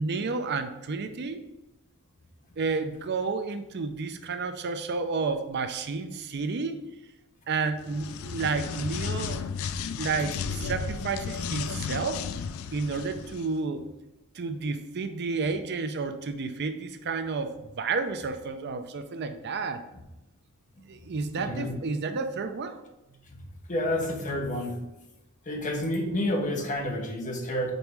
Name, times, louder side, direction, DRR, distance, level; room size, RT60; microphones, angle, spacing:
voice 1, 0.0-1.4 2.6-6.8 7.5-9.5 9.8-12.2 12.7-13.8 14.3-19.8 20.9-22.8, right 4 dB, 50° right, 8 dB, 0.5 m, -31 dB
sound 1, 7.8-13.5, left 6 dB, 65° left, 0.3 m, -34 dB
voice 2, 21.4-21.8 23.7-24.8 25.5-27.7, left 1 dB, 35° left, 2 dB, 1.0 m, -29 dB
5.3 x 4.1 x 4.6 m, 0.97 s
head